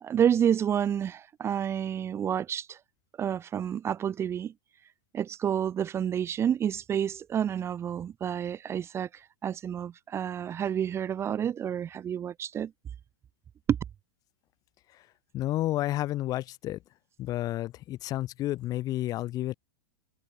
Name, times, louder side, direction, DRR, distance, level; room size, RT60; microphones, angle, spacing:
voice 1, 0.0-2.8 3.2-4.5 5.1-9.1 9.4-12.7, right 9 dB, 20° right, 1.0 m, -29 dB
voice 2, 15.3-16.8 17.2-19.5, left 15 dB, 30° left, 1.2 m, -31 dB
figure-of-eight pair, 95°, 12 cm